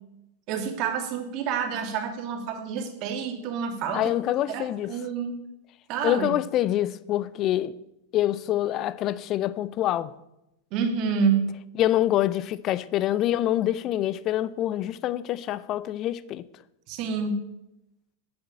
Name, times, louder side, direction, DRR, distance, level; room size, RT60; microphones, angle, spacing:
voice 1, 0.5-4.1 4.5-5.3 5.9-6.4 10.7-11.5 16.9-17.4, right 6 dB, 40° right, 2.5 m, -28 dB
voice 2, 3.9-4.9 6.0-7.8 8.1-10.1 11.8-16.4, left 13 dB, 35° left, 0.6 m, -26 dB
11.5 x 7.9 x 8.9 m
figure-of-eight pair, 90°, 0 cm